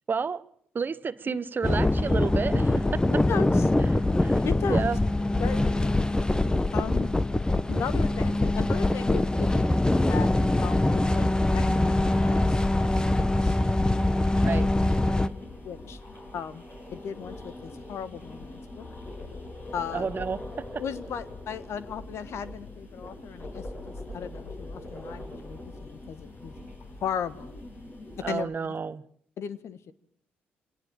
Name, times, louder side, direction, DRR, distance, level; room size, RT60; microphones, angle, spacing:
voice 1, 0.1-0.4 0.7-3.0 4.2-4.4 4.7-5.0 14.4-14.7 19.9-20.8 28.2-29.0, right 5 dB, 40° right, 1.0 m, -30 dB
sound 1, 1.6-15.3, left 2 dB, 15° left, 1.1 m, -23 dB
voice 2, 3.3-3.7 4.4-4.9 5.4-5.8 6.7-7.1 7.7-10.3 10.6-13.6 14.5-15.0 15.6-16.0 16.3-16.6 16.9-18.8 19.7-20.1 20.8-26.5 27.0-27.5 28.3-28.7 29.4-29.9, left 7 dB, 60° left, 1.3 m, -36 dB
sound 2, 10.4-28.4, left 2 dB, 45° left, 7.2 m, -43 dB
25.0 x 18.0 x 7.3 m
hypercardioid pair, 45°, 5 cm